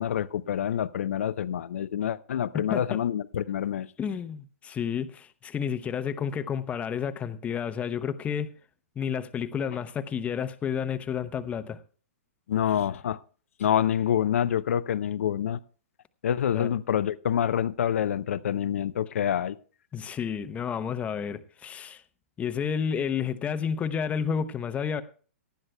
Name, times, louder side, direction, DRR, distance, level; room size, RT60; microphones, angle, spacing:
voice 1, 0.0-3.9 12.5-13.2 13.6-15.6 16.2-19.6, left 9 dB, 75° left, 0.5 m, -27 dB
voice 2, 4.0-8.5 9.0-11.8 16.5-16.7 19.9-22.0 22.4-25.0, left 7 dB, 20° left, 0.7 m, -30 dB
18.5 x 11.5 x 2.2 m
hypercardioid pair, 125°, 8 cm